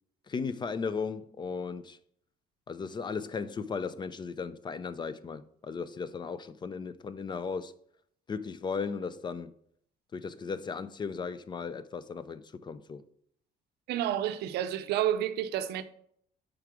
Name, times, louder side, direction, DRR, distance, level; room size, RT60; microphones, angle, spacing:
voice 1, 0.3-2.0 2.7-7.7 8.3-9.5 10.1-13.0, left 5 dB, 25° left, 0.4 m, -36 dB
voice 2, 13.9-15.8, right 11 dB, 75° right, 0.5 m, -30 dB
5.0 x 4.6 x 5.8 m
cardioid pair, 110°, 17 cm